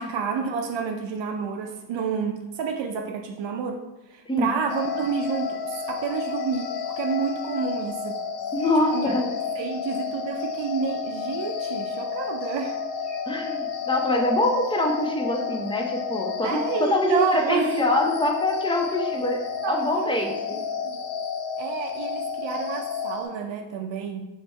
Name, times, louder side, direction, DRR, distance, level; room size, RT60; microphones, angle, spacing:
voice 1, 0.0-8.2 8.9-12.8 16.4-17.8 19.6-21.0 21.6-24.3, right 6 dB, 75° right, 3 dB, 0.6 m, -30 dB
sound 1, 4.7-23.3, left 6 dB, 60° left, 0.8 m, -31 dB
voice 2, 8.5-9.2 13.3-19.4 19.7-20.6, left 1 dB, 10° left, 2 dB, 0.6 m, -24 dB
3.4 x 3.1 x 4.3 m, 1.0 s
cardioid pair, 110°, 46 cm